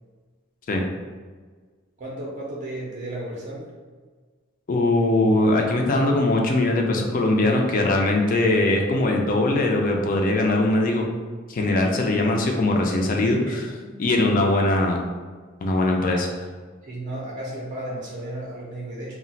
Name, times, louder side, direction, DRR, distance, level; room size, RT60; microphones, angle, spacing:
voice 1, 2.0-3.7 13.5-14.0 16.1-16.3 16.8-19.2, right 1 dB, 40° right, -4 dB, 0.5 m, -34 dB
voice 2, 4.7-11.0 11.5-13.6 14.0-15.0 15.6-16.3, left 2 dB, 45° left, 2 dB, 0.4 m, -21 dB
2.3 x 2.1 x 3.9 m, 1.5 s
head